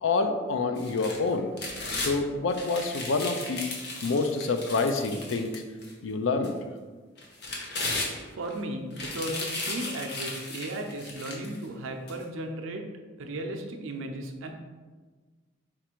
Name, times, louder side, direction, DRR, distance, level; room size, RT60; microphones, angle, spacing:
voice 1, 0.0-1.5 1.9-3.7 4.0-5.6 6.0-6.6, left 3 dB, 70° left, 7 dB, 0.4 m, -27 dB
sound 1, 0.8-2.1 2.5-5.9 6.4-6.5 7.2-8.5 8.9-11.6 12.1-12.2, left 2 dB, 55° left, 0.8 m, -35 dB
voice 2, 8.3-12.8 13.2-14.5, right 1 dB, 75° right, 3 dB, 0.6 m, -35 dB
4.4 x 2.5 x 4.4 m, 1.4 s
head